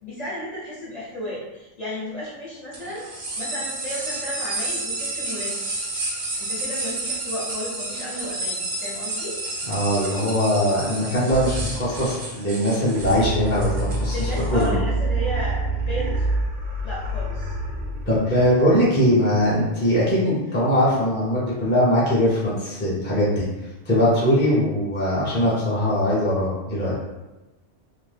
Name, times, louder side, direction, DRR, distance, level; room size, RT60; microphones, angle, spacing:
voice 1, 0.0-3.1 3.4-5.6 6.4-9.4 14.1-16.2 16.8-17.6, equal, 40° left, -8 dB, 0.8 m, -33 dB
sound 1, 2.7-14.7, right 2 dB, 50° right, 0.6 m, -31 dB
voice 2, 9.7-14.8 18.1-23.5 23.9-27.0, equal, 10° left, -8 dB, 0.6 m, -21 dB
sound 2, 11.3-12.4 12.9-18.9, right 2 dB, 75° right, 0.9 m, -27 dB
2.7 x 2.0 x 3.3 m, 1.1 s
omnidirectional pair, 1.2 m